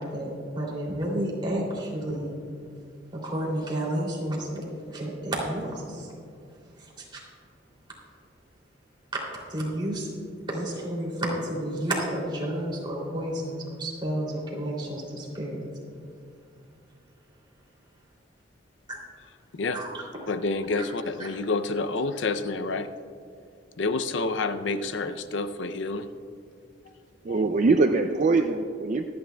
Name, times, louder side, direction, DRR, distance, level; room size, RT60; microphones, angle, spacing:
voice 1, 0.0-2.3 3.1-4.6 4.9-6.1 7.1-7.2 9.5-10.1 10.5-15.7 18.9-19.0 19.7-19.9 21.2-21.3, right 1 dB, 25° right, -4 dB, 2.8 m, -31 dB
voice 2, 20.3-22.9 23.8-26.1 27.3-27.4, left 3 dB, 70° left, 10 dB, 0.5 m, -28 dB
voice 3, 27.2-29.0, right 3 dB, 40° right, 6 dB, 0.4 m, -22 dB
24.5 x 9.5 x 2.3 m, 2.4 s
head